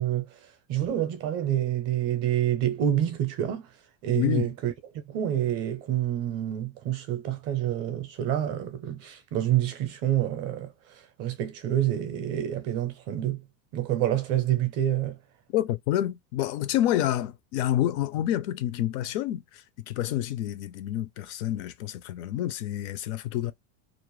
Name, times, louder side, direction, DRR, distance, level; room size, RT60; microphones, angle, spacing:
voice 1, 0.0-3.8 4.0-4.7 5.1-13.4 13.7-15.2, right 11 dB, 35° right, 0.6 m, -28 dB
voice 2, 4.1-4.5 15.5-23.5, left 12 dB, 55° left, 0.5 m, -28 dB
2.5 x 2.1 x 3.0 m
supercardioid pair, 165°, 43 cm